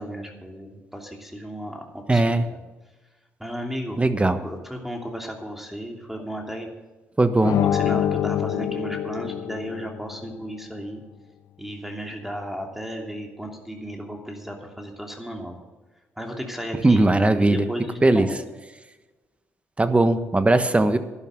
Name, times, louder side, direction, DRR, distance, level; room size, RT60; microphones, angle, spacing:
voice 1, 0.0-2.6 3.4-4.0 4.4-6.7 7.4-11.0 11.6-15.6 16.2-17.0 17.4-18.4, equal, 5° right, 2 dB, 2.9 m, -34 dB
voice 2, 2.1-2.4 4.0-4.4 7.2-7.6 16.8-17.7 18.0-18.3 19.8-21.0, right 2 dB, 20° right, 10 dB, 1.3 m, -19 dB
sound 1, 7.4-10.1, left 10 dB, 70° left, 0.4 m, -25 dB
11.5 x 11.5 x 6.6 m, 1.2 s
hypercardioid pair, 50°, 6 cm